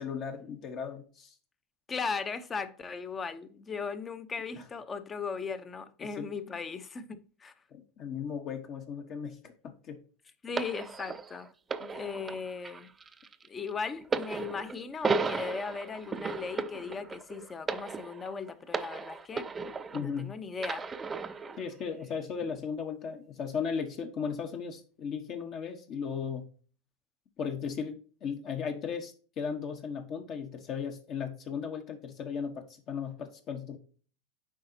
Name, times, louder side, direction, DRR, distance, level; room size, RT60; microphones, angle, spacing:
voice 1, 0.0-1.3 4.6-4.7 6.0-6.3 7.7-10.0 11.9-12.1 19.9-20.3 21.6-26.5 27.4-33.8, left 6 dB, 40° left, 1.1 m, -36 dB
voice 2, 1.9-7.5 10.4-11.5 11.9-12.9 13.5-19.5 20.0-20.9, left 5 dB, 20° left, 0.8 m, -37 dB
sound 1, 10.6-20.2 20.6-21.6 22.4-22.6, right 4 dB, 20° right, 0.5 m, -35 dB
8.4 x 4.9 x 2.7 m
supercardioid pair, 125°, 0 cm